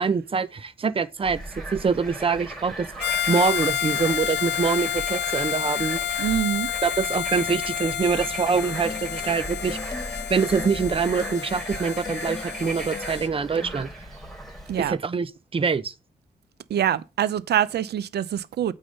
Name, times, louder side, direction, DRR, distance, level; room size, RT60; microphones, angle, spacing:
voice 1, 0.0-1.4 1.7-6.3 6.8-9.8 10.3-13.9 14.9-15.9, right 5 dB, 35° right, 0.7 m, -25 dB
Bird / Frog, 1.2-15.0, right 2 dB, ahead, 4.6 m, -37 dB
Harmonica, 3.0-13.3, left 11 dB, 90° left, 0.5 m, -30 dB
voice 2, 6.2-6.7 14.7-15.0 16.7-18.7, right 10 dB, 85° right, 0.7 m, -24 dB
sound 1, 8.4-13.9, left 4 dB, 25° left, 1.7 m, -40 dB
8.7 x 3.7 x 6.6 m
wide cardioid pair, 125°, 17 cm